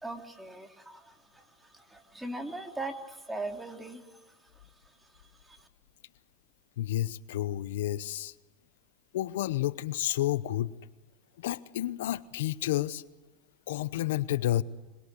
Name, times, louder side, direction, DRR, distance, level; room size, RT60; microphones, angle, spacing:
voice 1, 0.0-1.4 1.7-4.0 5.5-5.6, right 2 dB, 5° right, 4 dB, 3.1 m, -39 dB
voice 2, 6.8-8.3 9.1-10.7 11.4-13.0 13.7-14.6, left 14 dB, 85° left, 17 dB, 0.8 m, -30 dB
26.5 x 21.0 x 8.3 m, 1.2 s
supercardioid pair, 115°, 0 cm